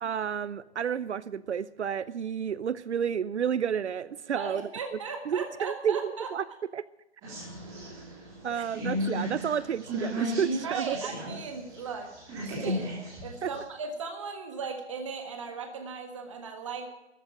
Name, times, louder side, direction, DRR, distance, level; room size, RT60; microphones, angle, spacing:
voice 1, 0.0-4.6 5.3-6.4 6.7-6.8 8.4-11.0 13.4-13.5, right 8 dB, 80° right, 18 dB, 0.6 m, -31 dB
voice 2, 4.3-6.3 8.5-8.6 10.6-12.1 12.6-12.9 13.2-16.9, right 5 dB, 25° right, 4 dB, 1.6 m, -37 dB
sound 1, 7.2-11.4 11.7-13.6, equal, 10° right, 2.9 m, -34 dB
13.5 x 9.3 x 9.3 m, 0.94 s
hypercardioid pair, 170°, 34 cm